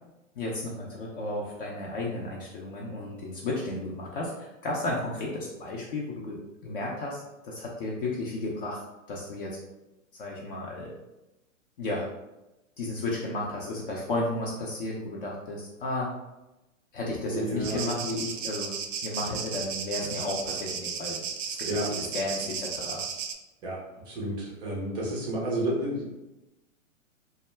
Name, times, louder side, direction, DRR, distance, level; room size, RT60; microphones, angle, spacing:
voice 1, 0.4-9.6 10.2-10.9 11.8-12.1 12.8-16.2 16.9-18.7 19.0-23.0, left 2 dB, 45° left, -3 dB, 0.5 m, -33 dB
voice 2, 17.3-17.9 21.7-21.9 23.6-23.8 24.1-26.1, right 1 dB, 15° right, -5 dB, 0.4 m, -30 dB
sound 1, 17.6-23.3, right 6 dB, 70° right, 0.5 m, -35 dB
2.2 x 2.0 x 3.2 m, 0.99 s
hypercardioid pair, 125°, 40 cm